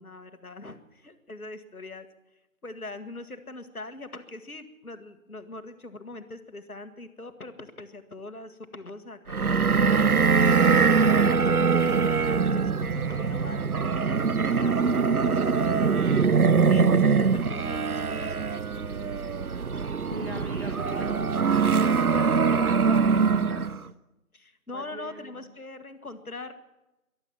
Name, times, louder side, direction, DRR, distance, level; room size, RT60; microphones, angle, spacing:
voice 1, 0.0-2.1 2.6-10.5 11.0-13.7 14.1-18.7 24.3-26.5, left 2 dB, 75° left, 10 dB, 1.7 m, -42 dB
sound 1, 9.3-23.8, right 5 dB, 80° right, 0.8 m, -23 dB
voice 2, 20.1-21.2 21.7-23.8 24.7-25.2, right 1 dB, 45° right, 3 dB, 1.8 m, -39 dB
23.0 x 8.1 x 7.5 m, 0.97 s
figure-of-eight pair, 180°, 43 cm